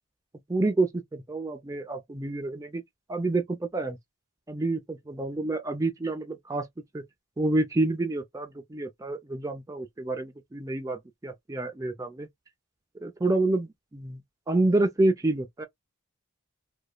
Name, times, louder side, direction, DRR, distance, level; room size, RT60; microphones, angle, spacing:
voice 1, 0.5-2.8 3.1-4.0 4.5-6.7 6.9-7.0 7.4-12.3 13.0-14.2 14.5-15.6, right 2 dB, 15° right, 0.3 m, -28 dB
2.9 x 2.2 x 2.2 m
head